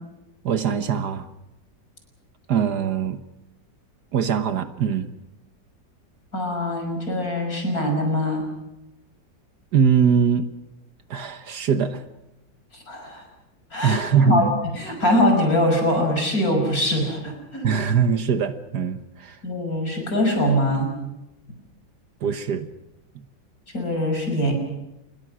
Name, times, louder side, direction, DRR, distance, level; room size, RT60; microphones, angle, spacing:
voice 1, 0.4-1.3 2.5-3.2 4.1-5.1 9.7-10.5 11.1-12.0 13.8-14.5 17.6-19.4 22.2-22.7, right 6 dB, 65° right, 10 dB, 1.7 m, -22 dB
voice 2, 6.3-8.4 12.7-13.2 13.7-14.0 14.2-14.5 14.7-17.7 19.4-20.9 23.7-24.5, left 1 dB, 50° left, 3 dB, 6.4 m, -22 dB
28.5 x 21.5 x 6.3 m, 0.92 s
omnidirectional pair, 2.0 m